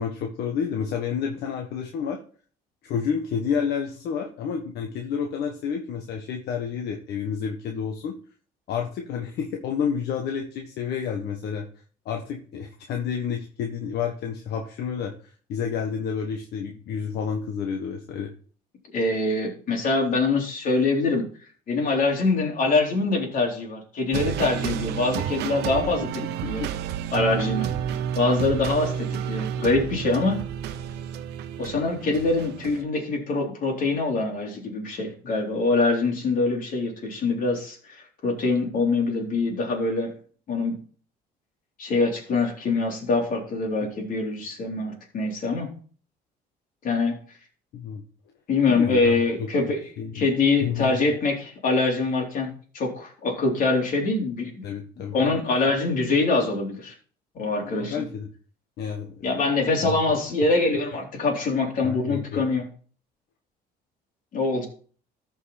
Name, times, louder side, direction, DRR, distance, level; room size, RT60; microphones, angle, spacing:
voice 1, 0.0-2.2 2.8-8.1 8.7-11.7 12.0-18.3 26.0-26.1 26.4-26.7 47.7-48.0 48.7-49.5 50.0-50.2 50.6-50.9 54.6-55.3 57.6-58.3 58.8-59.3 59.8-60.0 61.8-62.4, left 7 dB, 75° left, 3 dB, 1.4 m, -30 dB
voice 2, 18.9-21.2 21.7-26.1 26.4-26.6 27.1-27.7 28.1-30.4 31.6-38.0 38.2-40.1 40.5-40.7 41.8-45.7 46.8-47.1 48.5-49.8 50.1-54.7 55.1-56.9 57.4-58.0 59.2-62.7 64.3-64.7, left 3 dB, 55° left, 0 dB, 3.9 m, -24 dB
sound 1, 24.1-32.8, right 9 dB, 80° right, 0.9 m, -30 dB
14.0 x 5.6 x 4.3 m, 0.43 s
cardioid pair, 110°, 17 cm